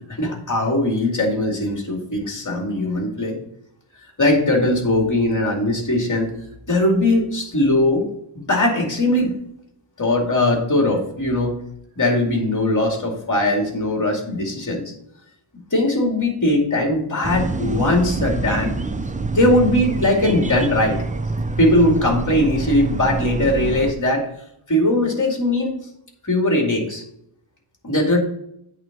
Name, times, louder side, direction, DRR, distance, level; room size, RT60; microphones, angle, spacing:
voice 1, 0.0-3.4 4.2-6.3 6.7-8.0 8.5-9.3 10.0-11.5 12.0-14.9 15.7-18.7 19.3-21.0 21.6-24.3 24.7-25.8 26.2-27.0 27.8-28.2, left 1 dB, 40° left, 1 dB, 2.4 m, -20 dB
sound 1, 17.2-23.9, right 3 dB, 15° right, 0.5 m, -26 dB
8.6 x 3.9 x 6.0 m, 0.74 s
wide cardioid pair, 75°, 48 cm